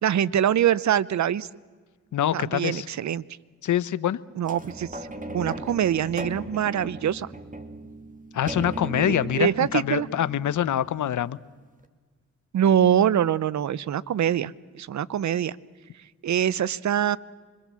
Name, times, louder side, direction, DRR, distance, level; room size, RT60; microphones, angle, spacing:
voice 1, 0.0-1.5 2.3-3.2 4.4-5.0 5.3-7.3 9.0-10.1 12.5-14.5 14.8-15.6 16.2-17.2, right 10 dB, 60° right, 20 dB, 0.8 m, -24 dB
voice 2, 2.1-2.9 3.6-4.2 8.3-11.4, left 11 dB, 65° left, 16 dB, 0.8 m, -25 dB
sound 1, 4.4-11.2 11.8-11.9, right 2 dB, 25° right, 2.4 m, -38 dB
26.0 x 22.0 x 7.5 m, 1.5 s
cardioid pair, 55°, 32 cm